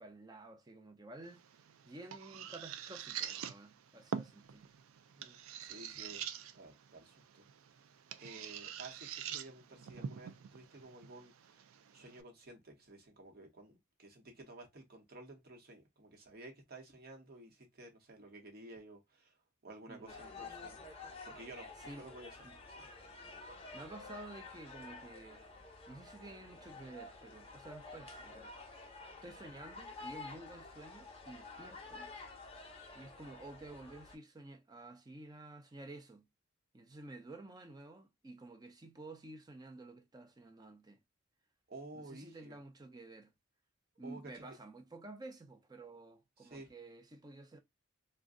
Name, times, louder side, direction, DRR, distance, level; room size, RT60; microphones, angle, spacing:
voice 1, 0.0-1.4 1.8-4.7 5.9-6.0 19.9-20.1 21.9-22.1 22.4-22.6 23.7-25.5 25.9-28.5 29.2-32.1 32.9-36.3 36.7-41.0 41.9-43.3 44.0-47.6, right 2 dB, 20° right, 0.5 m, -51 dB
sound 1, 1.2-12.2, right 8 dB, 85° right, 0.4 m, -46 dB
voice 2, 5.2-6.3 6.5-7.4 8.2-19.4 19.6-20.8 21.2-22.4 22.8-22.9 41.7-42.6 44.0-44.6 46.4-46.7, right 2 dB, 50° right, 0.9 m, -53 dB
sound 2, 20.1-34.2, left 3 dB, 30° left, 0.6 m, -50 dB
2.5 x 2.2 x 3.6 m
head